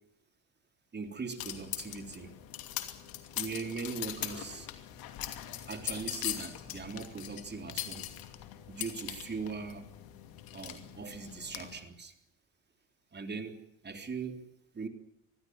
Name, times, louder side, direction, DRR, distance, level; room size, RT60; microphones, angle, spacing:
voice 1, 0.9-2.3 3.3-4.7 5.7-8.1 8.7-9.9 10.5-12.1 13.1-14.9, right 4 dB, 25° right, 7 dB, 3.7 m, -40 dB
sound 1, 1.4-11.8, left 13 dB, 65° left, 2.7 m, -41 dB
23.5 x 15.0 x 9.6 m, 0.76 s
supercardioid pair, 80°, 38 cm